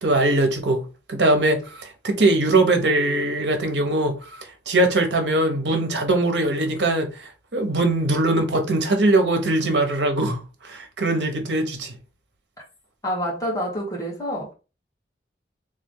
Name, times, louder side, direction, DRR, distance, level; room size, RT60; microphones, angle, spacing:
voice 1, 0.0-0.8 1.1-11.9, right 2 dB, 85° right, 1.1 m, -21 dB
voice 2, 13.0-14.5, equal, 20° left, 1.8 m, -27 dB
3.5 x 3.4 x 3.8 m
head